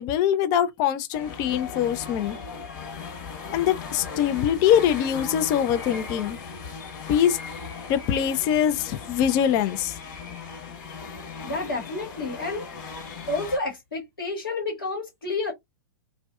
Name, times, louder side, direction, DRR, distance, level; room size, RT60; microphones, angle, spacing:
voice 1, 0.0-2.4 3.5-6.4 7.1-7.4 7.9-9.9, left 9 dB, 35° left, 0.4 m, -23 dB
sound 1, 1.1-13.6, left 5 dB, 55° left, 1.1 m, -38 dB
voice 2, 11.4-12.7 13.3-15.5, left 3 dB, 85° left, 1.1 m, -30 dB
2.5 x 2.2 x 2.3 m
figure-of-eight pair, 105°, 11 cm